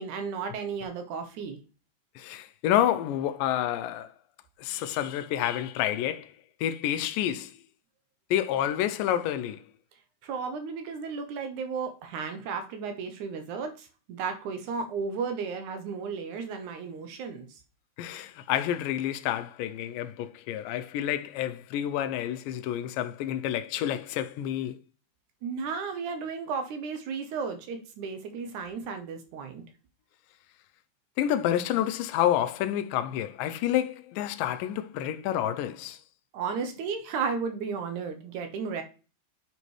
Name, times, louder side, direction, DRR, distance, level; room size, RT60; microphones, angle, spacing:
voice 1, 0.0-1.6 10.2-17.5 25.4-29.6 36.3-38.8, right 5 dB, 70° right, 2.2 m, -34 dB
voice 2, 2.2-4.1 4.6-6.3 6.6-7.5 8.3-9.6 18.0-24.8 31.2-36.0, left 11 dB, 90° left, 2.3 m, -29 dB
9.0 x 5.4 x 3.2 m
omnidirectional pair, 3.8 m